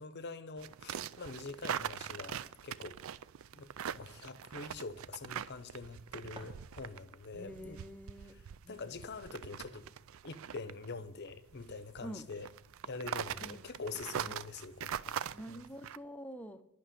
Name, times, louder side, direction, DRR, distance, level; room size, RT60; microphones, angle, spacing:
voice 1, 0.0-3.0 3.5-7.8 8.3-9.9 10.2-12.5 12.8-15.2 15.5-15.6, left 4 dB, 50° left, 0.7 m, -45 dB
sound 1, 0.6-16.0, right 8 dB, 65° right, 0.4 m, -42 dB
sound 2, 6.2-7.3, right 1 dB, 20° right, 1.8 m, -55 dB
voice 2, 7.4-8.4 8.6-8.9 12.0-12.3 13.4-13.6 15.3-16.6, equal, 5° left, 0.6 m, -47 dB
11.5 x 5.9 x 9.1 m
head